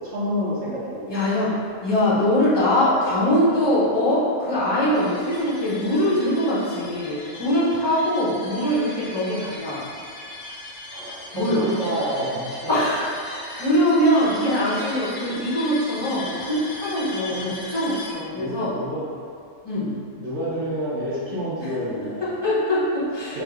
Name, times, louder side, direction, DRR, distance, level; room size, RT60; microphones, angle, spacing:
voice 1, 0.0-1.4 10.9-12.7 17.3-17.5 18.3-19.1 20.1-22.4 23.3-23.4, equal, 60° right, -8 dB, 1.0 m, -29 dB
voice 2, 1.1-1.5 1.8-9.8 11.3-11.6 12.7-18.7 19.6-19.9 21.6-23.4, left 1 dB, 20° left, -10 dB, 0.7 m, -22 dB
sound 1, 4.9-18.1, left 2 dB, 60° left, 0.9 m, -38 dB
3.6 x 2.1 x 3.5 m, 2.3 s
omnidirectional pair, 1.5 m